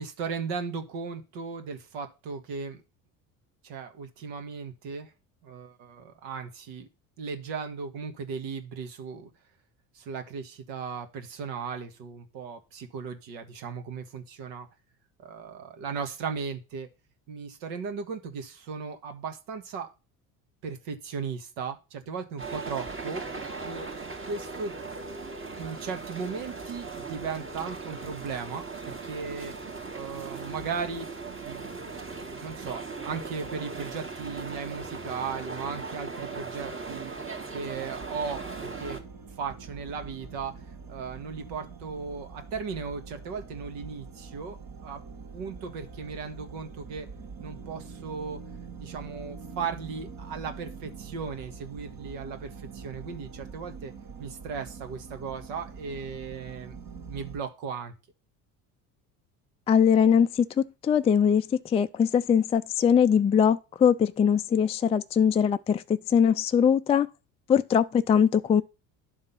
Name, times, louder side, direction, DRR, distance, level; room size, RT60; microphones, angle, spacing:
voice 1, 0.0-2.8 3.6-5.1 5.4-6.9 7.2-9.3 9.9-14.7 15.2-16.9 17.3-19.9 20.6-23.2 23.6-23.9 24.3-24.8 25.6-31.8 32.4-37.1 37.5-39.0 39.4-40.6 40.9-45.0 45.3-47.1 47.4-48.4 48.8-53.9 54.2-56.8 57.0-57.9, right 5 dB, 65° right, 1.6 m, -36 dB
sound 1, 22.4-39.0, right 4 dB, 25° right, 2.0 m, -38 dB
sound 2, 37.9-57.4, right 5 dB, 45° right, 2.0 m, -44 dB
voice 2, 59.7-60.5 60.8-67.1 67.5-68.6, left 7 dB, 15° left, 0.3 m, -22 dB
10.5 x 3.7 x 5.7 m
hypercardioid pair, 65°, 47 cm